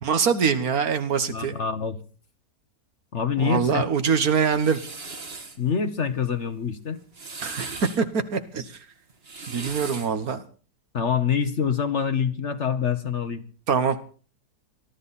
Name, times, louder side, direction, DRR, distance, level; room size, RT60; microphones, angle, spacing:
voice 1, 0.0-1.6 3.4-4.8 7.4-8.8 9.5-10.4 13.7-14.0, right 6 dB, 60° right, 9 dB, 1.7 m, -24 dB
voice 2, 1.3-2.0 3.1-3.8 5.6-7.0 10.9-13.4, left 7 dB, 45° left, 10 dB, 1.3 m, -25 dB
sound 1, 4.3-5.6 7.0-8.0 9.1-10.2, right 3 dB, 40° right, 1.8 m, -38 dB
22.5 x 13.0 x 4.2 m, 0.39 s
omnidirectional pair, 1.8 m